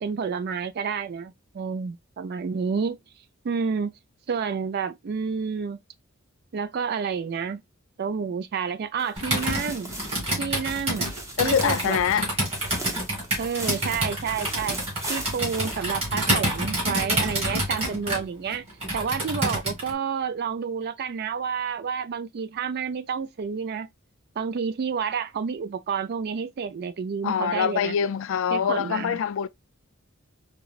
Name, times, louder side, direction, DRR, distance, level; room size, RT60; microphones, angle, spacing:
voice 1, 0.0-3.0 3.4-3.9 4.3-5.8 6.5-7.6 8.0-9.9 10.4-11.1 11.4-12.0 12.7-12.9 13.4-14.8 15.1-18.7 18.9-23.9 24.4-28.0 28.5-29.2, right 6 dB, 50° right, 0.4 m, -29 dB
sound 1, 9.0-16.7 17.0-17.1 17.6-17.7, right 1 dB, 15° right, 0.7 m, -39 dB
Computer keyboard, 9.2-19.9, right 1 dB, 30° right, 2.0 m, -28 dB
voice 2, 11.4-12.3 27.2-29.5, left 8 dB, 65° left, 0.3 m, -24 dB
4.6 x 2.0 x 2.3 m
head